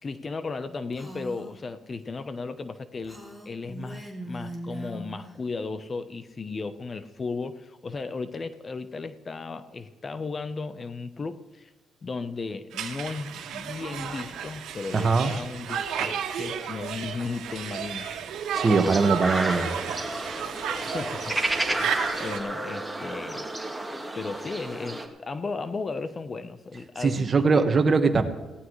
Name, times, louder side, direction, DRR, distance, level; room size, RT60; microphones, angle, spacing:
voice 1, 0.0-3.2 3.4-11.7 12.0-18.2 20.9-23.7 24.1-27.7, left 4 dB, 35° left, 11 dB, 0.9 m, -35 dB
Female speech woman speaking, 0.9-1.6 3.0-5.3, right 1 dB, 10° left, 3.0 m, -39 dB
Conversation, 12.7-22.4, right 8 dB, 85° right, 1.7 m, -33 dB
voice 2, 14.9-15.3 18.6-20.0 27.0-28.2, right 4 dB, 35° right, 6 dB, 1.5 m, -22 dB
sound 1, 18.5-25.1, right 1 dB, 10° right, 1.8 m, -31 dB
18.0 x 17.0 x 3.2 m, 1.1 s
cardioid pair, 90°, 0 cm